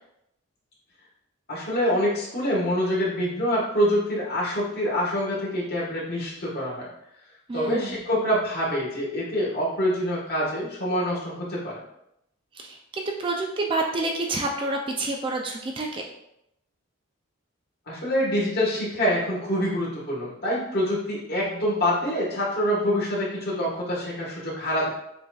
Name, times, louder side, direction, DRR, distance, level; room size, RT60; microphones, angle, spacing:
voice 1, 1.5-6.9 7.5-11.8 17.9-24.9, equal, 45° left, -6 dB, 1.4 m, -26 dB
voice 2, 7.5-8.0 12.6-16.0, right 2 dB, 25° right, 1 dB, 0.3 m, -28 dB
6.8 x 2.5 x 2.3 m, 0.79 s
head